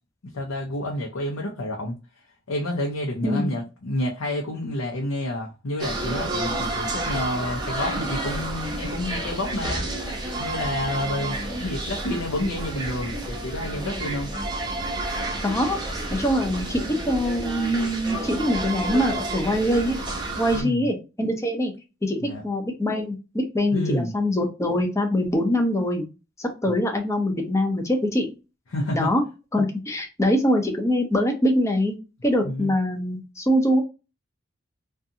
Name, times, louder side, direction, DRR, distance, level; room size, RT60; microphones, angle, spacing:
voice 1, 0.3-2.0 2.5-9.8 10.4-14.3 20.5-20.9 22.2-22.4 23.7-24.1 28.7-29.1 32.4-32.7, left 1 dB, 90° left, 0.6 m, -29 dB
voice 2, 3.2-3.6 15.4-15.8 16.1-20.0 20.4-21.7 22.0-26.0 26.4-28.3 28.9-29.2 29.5-32.0 32.2-33.8, equal, 15° left, 0.5 m, -23 dB
sound 1, 5.8-20.6, right 2 dB, 20° right, 0.7 m, -30 dB
2.6 x 2.3 x 2.6 m
head